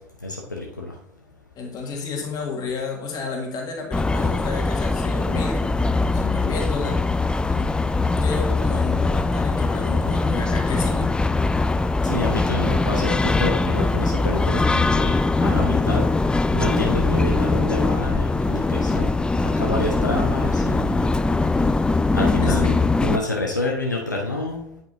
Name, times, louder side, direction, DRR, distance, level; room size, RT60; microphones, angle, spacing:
voice 1, 0.2-0.9 12.0-16.1 16.5-19.1 19.4-21.0 22.1-24.6, left 2 dB, 85° left, -1 dB, 0.8 m, -28 dB
voice 2, 1.6-5.6 6.1-7.0 7.5-7.7 8.2-11.1 12.4-12.6 22.4-22.6, left 5 dB, 40° left, 1 dB, 2.0 m, -31 dB
sound 1, 3.9-23.2, left 3 dB, 10° left, 0.3 m, -21 dB
9.1 x 5.4 x 2.7 m, 0.73 s
figure-of-eight pair, 65°, 10 cm